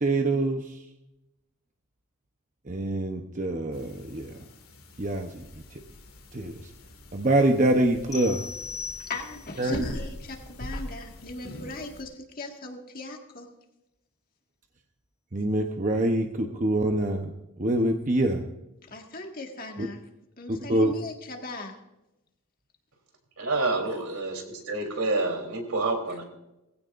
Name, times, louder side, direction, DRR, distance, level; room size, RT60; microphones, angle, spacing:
voice 1, 0.0-0.6 2.7-4.3 5.0-5.3 6.3-6.5 7.1-8.4 9.6-9.8 15.3-17.3 17.6-18.4 20.5-20.9, right 1 dB, 35° right, 3 dB, 0.9 m, -25 dB
sound 1, 3.7-12.0, left 1 dB, 80° left, 2.4 m, -43 dB
sound 2, 8.1-9.6, left 5 dB, 15° left, 0.6 m, -38 dB
voice 2, 9.0-13.5 18.9-20.0 20.4-21.8, left 2 dB, 40° left, 2 dB, 1.8 m, -38 dB
voice 3, 23.4-26.2, right 2 dB, 85° right, 3 dB, 3.5 m, -28 dB
20.0 x 16.0 x 2.6 m, 0.94 s
head